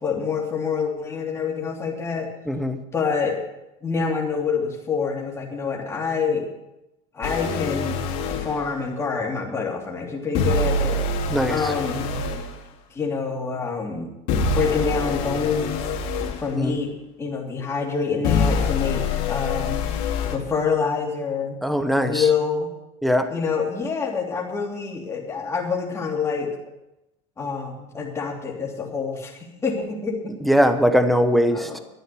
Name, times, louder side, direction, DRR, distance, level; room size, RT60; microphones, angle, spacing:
voice 1, 0.0-2.3 2.9-3.4 3.8-6.5 7.1-8.0 8.4-11.0 11.5-12.1 12.9-14.1 14.5-15.9 16.4-16.9 17.2-19.8 20.3-21.6 22.0-22.7 23.3-26.5 27.4-30.3 31.5-31.8, left 5 dB, 15° left, -2 dB, 3.1 m, -26 dB
voice 2, 2.5-2.8 11.3-11.7 16.5-16.8 21.6-22.3 23.0-23.3 30.4-31.8, equal, ahead, 8 dB, 1.0 m, -21 dB
sound 1, 7.2-8.5 10.4-12.5 14.3-16.4 18.2-20.4, left 3 dB, 65° left, 2.4 m, -25 dB
12.5 x 9.6 x 6.9 m, 0.92 s
supercardioid pair, 145°, 17 cm